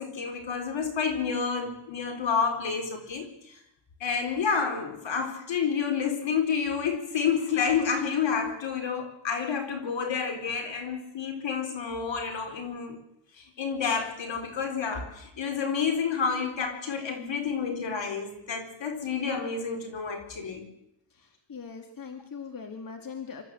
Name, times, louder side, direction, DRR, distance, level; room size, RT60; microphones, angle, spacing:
voice 1, 0.0-3.5 4.0-13.0 13.4-20.6, left 6 dB, 75° left, 4 dB, 4.3 m, -29 dB
voice 2, 21.1-23.4, left 6 dB, 50° left, 5 dB, 2.4 m, -41 dB
25.0 x 13.0 x 7.9 m, 0.80 s
cardioid pair, 90°, 45 cm